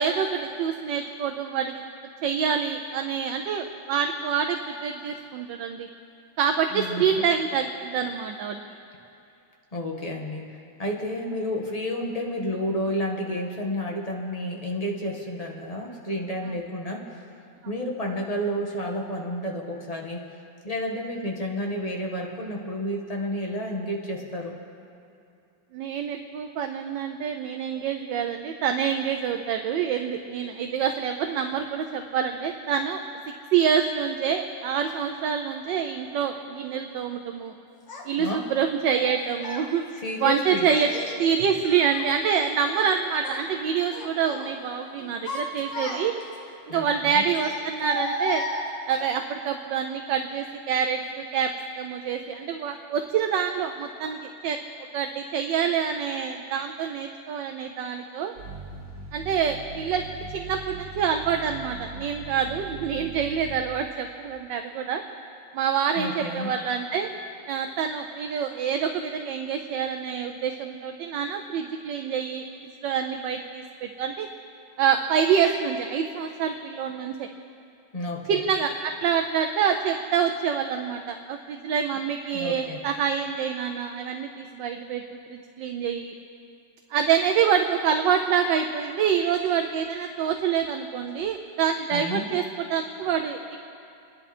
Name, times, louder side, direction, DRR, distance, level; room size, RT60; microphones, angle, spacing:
voice 1, 0.0-1.8 2.2-5.9 6.4-8.6 16.5-16.6 25.7-33.0 33.5-37.5 38.0-39.8 40.2-40.9 41.2-46.1 46.7-48.4 48.9-51.5 51.8-54.6 54.9-58.3 59.1-65.0 65.5-67.1 67.5-72.4 72.8-74.3 74.8-77.3 78.3-86.1 86.9-93.6, right 7 dB, 75° right, 5 dB, 1.4 m, -26 dB
voice 2, 6.7-7.0 9.7-17.1 17.6-20.2 20.6-24.6 38.2-38.4 39.9-40.7 46.7-47.2 65.9-66.5 77.9-78.4 82.3-82.8 91.9-92.3, left 1 dB, 20° left, 0 dB, 1.7 m, -31 dB
Child speech kid speaking, 37.9-38.0 38.9-39.7 40.6-41.2 41.6-42.9 43.2-43.5 43.9-44.5 45.0-46.3 47.3-49.1, left 1 dB, 70° left, 2.4 m, -34 dB
sound 1, 58.4-63.6, right 3 dB, 55° right, 2.4 m, -40 dB
28.0 x 11.0 x 4.4 m, 2.6 s
omnidirectional pair, 2.1 m